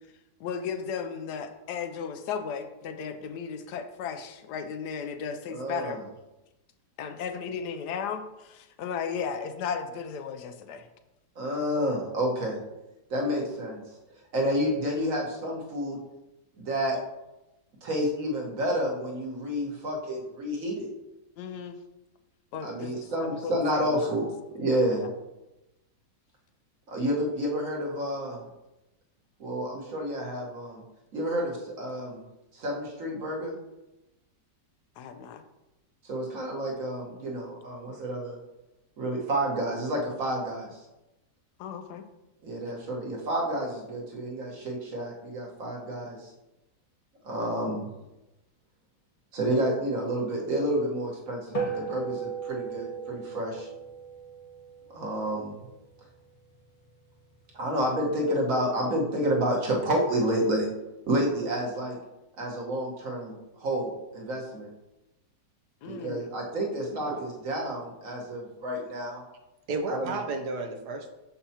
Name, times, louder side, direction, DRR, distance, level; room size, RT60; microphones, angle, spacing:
voice 1, 0.4-6.0 7.0-10.9 21.4-21.8 22.5-24.0 24.9-25.1 35.0-35.4 41.6-42.0 65.8-66.4, left 6 dB, 75° left, 8 dB, 1.1 m, -35 dB
voice 2, 5.5-6.0 11.4-12.6 13.1-13.8 14.3-16.0 16.6-17.0 17.8-20.9 22.6-25.0 26.9-28.4 29.4-30.8 31.1-32.2 32.5-33.6 36.0-38.4 39.0-40.8 42.4-46.3 47.2-47.9 49.3-53.7 54.9-55.5 57.5-60.7 61.1-62.0 62.4-64.7 65.9-69.2 69.9-70.1, equal, 50° right, -2 dB, 1.6 m, -29 dB
sound 1, 51.5-56.2, right 5 dB, 30° left, 0.7 m, -36 dB
voice 3, 69.7-71.2, right 3 dB, 70° right, 4 dB, 1.2 m, -33 dB
6.9 x 5.6 x 2.8 m, 0.97 s
omnidirectional pair, 1.9 m